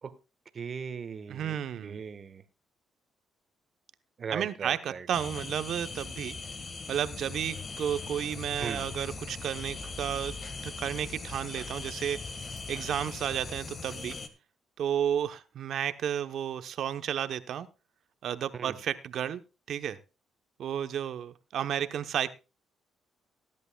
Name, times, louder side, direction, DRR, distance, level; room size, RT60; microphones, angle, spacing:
voice 1, 0.5-1.6 1.8-2.4 4.2-5.1 8.6-8.9 18.5-18.8, right 6 dB, 45° right, 11 dB, 1.3 m, -38 dB
voice 2, 1.3-2.0 4.3-6.4 6.9-10.3 10.6-12.4 12.7-14.2 14.8-17.7 18.2-19.4 19.7-20.0 20.6-22.3, right 9 dB, 70° right, 11 dB, 0.9 m, -32 dB
sound 1, 5.1-14.3, left 4 dB, 40° left, 1.5 m, -40 dB
19.5 x 11.0 x 2.3 m, 0.30 s
cardioid pair, 90°, 0 cm